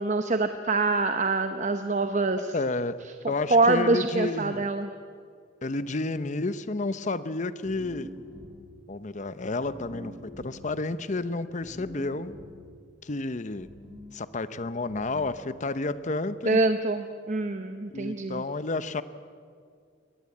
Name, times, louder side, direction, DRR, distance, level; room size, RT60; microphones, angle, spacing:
voice 1, 0.0-2.5 3.5-4.9 16.4-18.4, right 3 dB, 40° right, 8 dB, 0.8 m, -25 dB
voice 2, 2.5-3.0 3.3-4.7 5.6-8.1 8.9-10.1 10.4-12.3 13.0-13.7 14.1-16.6 17.9-19.0, left 2 dB, 40° left, 14 dB, 0.8 m, -31 dB
sound 1, 7.6-8.8 9.6-10.7 11.6-12.7 13.6-14.2 14.9-15.5, equal, ahead, 5.2 m, -45 dB
22.5 x 18.0 x 8.5 m, 2.2 s
head